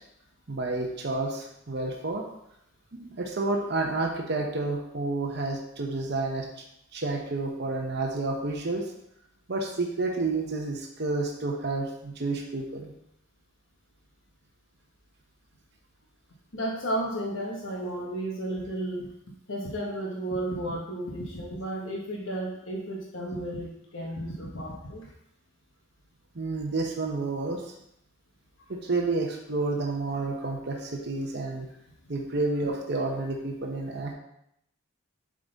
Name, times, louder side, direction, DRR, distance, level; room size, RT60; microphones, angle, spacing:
voice 1, 0.5-2.2 2.9-6.5 6.9-8.9 9.5-12.9 26.3-27.6 28.7-31.7 32.1-34.1, right 3 dB, 50° right, 1 dB, 0.8 m, -30 dB
voice 2, 16.5-19.1 19.5-25.1, right 1 dB, 65° left, -2 dB, 1.1 m, -33 dB
7.3 x 3.8 x 4.0 m, 0.77 s
head